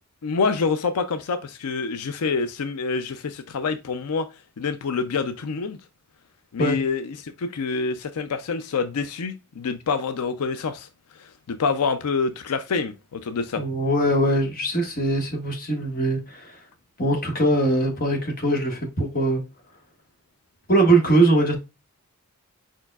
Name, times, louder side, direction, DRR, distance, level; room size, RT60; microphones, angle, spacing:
voice 1, 0.2-4.3 4.6-5.8 6.5-10.9 11.2-13.6, left 4 dB, 90° left, 0.5 m, -26 dB
voice 2, 13.6-16.6 17.0-19.4 20.7-21.5, right 2 dB, 40° left, 1.4 m, -21 dB
4.9 x 4.4 x 2.3 m
head